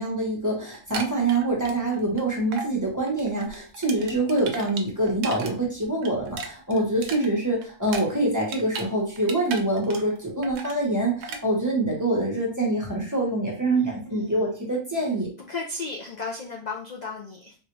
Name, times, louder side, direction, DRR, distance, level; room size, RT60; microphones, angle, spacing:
voice 1, 0.0-15.3, right 2 dB, 15° right, -3 dB, 0.8 m, -25 dB
sound 1, 0.7-2.2 2.5-2.7 3.1-5.5 5.8-8.9 9.2-10.2 10.4-10.8 11.2-11.4, right 4 dB, 80° right, 1.0 m, -36 dB
voice 2, 13.8-14.5 15.5-17.6, left 4 dB, 60° left, 0 dB, 0.4 m, -35 dB
3.6 x 2.4 x 3.0 m, 0.40 s
omnidirectional pair, 1.3 m